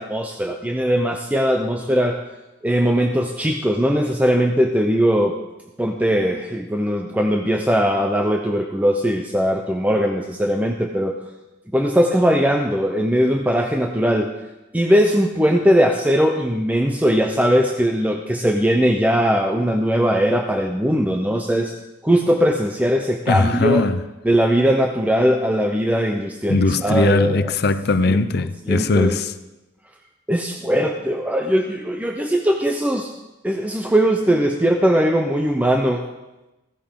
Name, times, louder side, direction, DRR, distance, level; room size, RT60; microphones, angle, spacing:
voice 1, 0.0-2.2 2.6-5.3 5.8-11.1 11.7-14.3 14.7-21.7 22.0-23.8 24.2-27.4 28.1-28.2 28.7-29.2 30.3-33.1 33.4-36.1, equal, 10° right, 0.7 m, -19 dB
voice 2, 23.3-24.0 26.5-29.3, left 3 dB, 55° left, 0.6 m, -19 dB
15.5 x 15.0 x 3.8 m
head